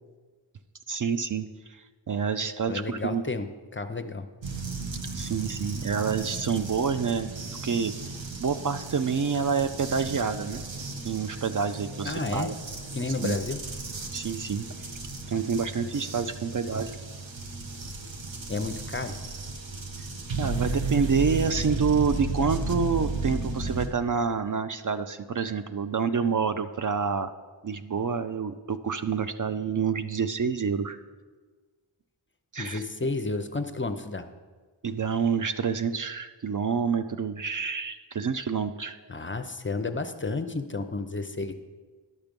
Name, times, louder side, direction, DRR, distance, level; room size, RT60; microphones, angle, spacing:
voice 1, 0.9-3.2 5.1-7.4 7.6-10.6 11.0-12.6 13.2-13.4 14.1-14.6 15.3-17.0 20.4-27.3 27.6-31.0 32.5-32.8 34.8-39.0, right 5 dB, 45° right, 10 dB, 0.4 m, -28 dB
voice 2, 2.7-3.5 3.7-4.3 12.0-12.5 12.9-13.6 18.5-19.1 32.6-34.3 39.1-41.5, left 3 dB, 30° left, 9 dB, 0.5 m, -31 dB
sound 1, 4.4-23.9, right 3 dB, 90° right, 1.0 m, -34 dB
11.0 x 6.0 x 5.2 m, 1.4 s
wide cardioid pair, 60°, 44 cm